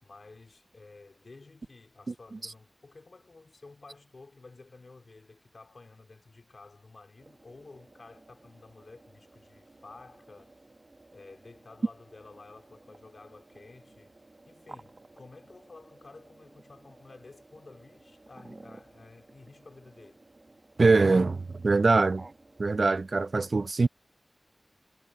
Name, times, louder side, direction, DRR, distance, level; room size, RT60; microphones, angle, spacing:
voice 1, 0.0-10.7 11.1-14.2 14.5-20.3, left 3 dB, 70° left, 4.1 m, -52 dB
sound 1, 7.2-23.4, right 2 dB, 50° right, 1.6 m, -55 dB
voice 2, 20.8-22.2 22.6-23.9, right 3 dB, 65° right, 0.6 m, -23 dB
wide cardioid pair, 70°, 0 cm